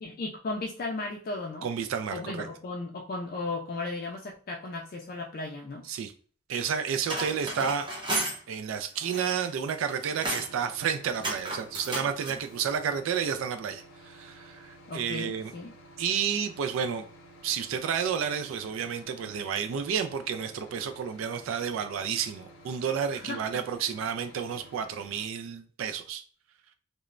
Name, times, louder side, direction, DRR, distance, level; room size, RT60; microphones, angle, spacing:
voice 1, 0.0-1.7 2.1-5.8 14.9-15.7 23.1-23.4, left 2 dB, 45° left, 0 dB, 0.4 m, -35 dB
voice 2, 1.6-2.5 5.9-6.1 6.5-7.9 8.5-15.5 16.0-17.1 17.4-26.2, right 7 dB, 80° right, 9 dB, 0.3 m, -31 dB
sound 1, 6.9-8.4 8.9-9.5 9.8-10.5 11.1-12.4, right 2 dB, 25° right, 0.7 m, -33 dB
sound 2, 10.1-25.3, equal, 85° left, 0.7 m, -52 dB
3.0 x 2.1 x 2.4 m, 0.42 s
head